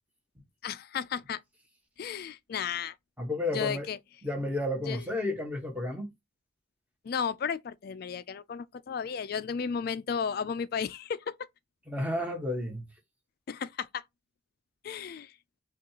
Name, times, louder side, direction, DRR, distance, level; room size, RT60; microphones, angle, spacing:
voice 1, 0.6-1.4 2.0-2.9 3.5-4.0 4.9-5.0 7.0-11.3 13.5-14.0 14.8-15.3, left 7 dB, 45° left, 0.3 m, -33 dB
voice 2, 3.2-3.9 4.2-6.1 11.9-12.9, left 1 dB, 5° right, 1.0 m, -32 dB
6.0 x 2.4 x 2.9 m
head